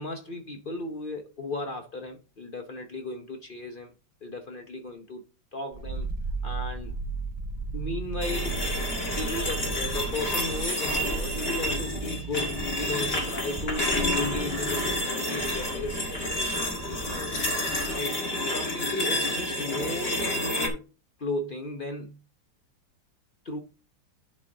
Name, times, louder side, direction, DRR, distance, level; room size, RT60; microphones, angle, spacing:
voice 1, 0.0-3.9 4.2-5.2 5.5-6.1 6.4-7.0 7.7-8.7 9.0-17.4 17.9-20.9 21.2-22.2 23.4-23.6, left 2 dB, 65° left, 0.5 m, -35 dB
sound 1, 5.7-18.1 18.4-18.5, right 4 dB, 25° right, 1.3 m, -36 dB
sound 2, 8.2-20.7, left 1 dB, 35° left, 1.6 m, -29 dB
11.5 x 4.2 x 3.7 m
omnidirectional pair, 2.1 m